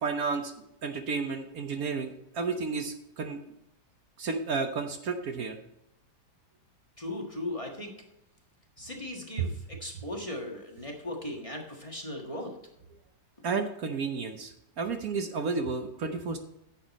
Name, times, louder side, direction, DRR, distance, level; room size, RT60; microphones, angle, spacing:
voice 1, 0.0-3.4 4.2-5.6 13.4-16.4, right 4 dB, 60° right, 6 dB, 1.3 m, -32 dB
voice 2, 7.0-7.9 8.8-12.6, left 1 dB, 20° left, 0 dB, 1.6 m, -38 dB
10.5 x 7.2 x 4.2 m, 0.84 s
omnidirectional pair, 1.8 m